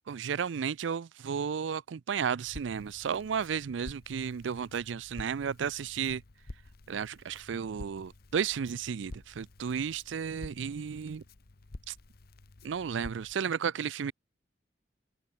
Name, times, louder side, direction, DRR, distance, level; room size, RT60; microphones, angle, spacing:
voice 1, 0.1-6.2 6.9-11.2 11.9-12.0 12.6-14.1, right 7 dB, 75° right, 0.4 m, -33 dB
Crackle, 2.4-13.3, left 2 dB, 55° left, 1.0 m, -50 dB
open air
head